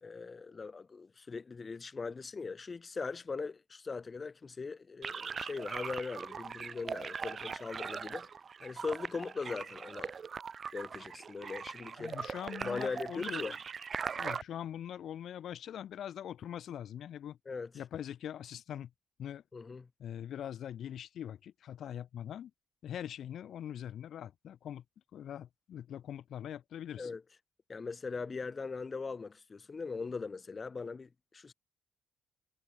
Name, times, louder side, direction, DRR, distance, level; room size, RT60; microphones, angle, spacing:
voice 1, 0.0-8.3 8.6-10.1 10.7-12.1 12.6-13.5 17.5-17.7 19.5-19.9 27.0-27.2 27.7-31.5, left 4 dB, 30° left, 3.8 m, -40 dB
sound 1, 5.0-14.4, right 6 dB, 45° right, 5.9 m, -40 dB
voice 2, 12.0-13.6 14.2-17.4 17.7-18.9 19.2-19.4 20.0-22.5 22.8-24.8 25.1-27.1, left 10 dB, 65° left, 4.2 m, -42 dB
cardioid pair, 90°, 0 cm